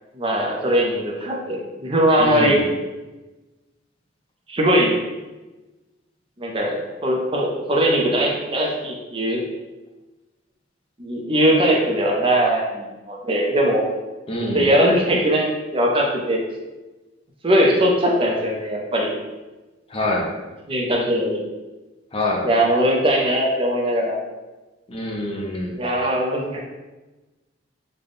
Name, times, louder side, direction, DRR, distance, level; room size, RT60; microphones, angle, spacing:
voice 1, 0.1-2.6 4.5-4.9 6.4-9.4 11.0-13.8 14.5-16.4 17.4-19.1 20.7-21.4 22.4-24.2 25.8-26.6, equal, 30° right, -1 dB, 0.5 m, -20 dB
voice 2, 2.2-2.6 14.3-14.6 19.9-20.3 22.1-22.5 24.9-25.8, left 1 dB, 30° left, -2 dB, 0.6 m, -25 dB
3.8 x 2.2 x 3.4 m, 1.1 s
head